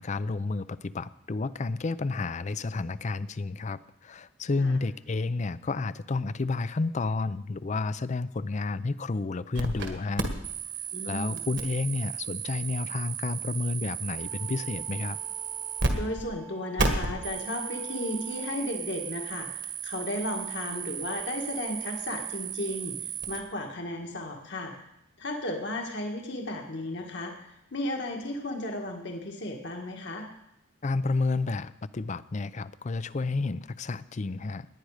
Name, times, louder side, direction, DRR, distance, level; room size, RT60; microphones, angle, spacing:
voice 1, 0.0-10.3 11.0-15.2 30.8-34.7, left 3 dB, 35° left, 16 dB, 0.5 m, -31 dB
sound 1, 9.5-9.9 10.2-15.9 16.2-16.3 16.8-23.4, right 5 dB, 60° right, 1.7 m, -34 dB
voice 2, 10.9-11.5 15.9-23.0 23.3-24.7 25.2-30.3, left 1 dB, 60° left, 1 dB, 1.8 m, -34 dB
sound 2, 14.1-18.6, right 6 dB, 75° right, 2.4 m, -49 dB
18.5 x 10.5 x 5.0 m, 0.81 s
head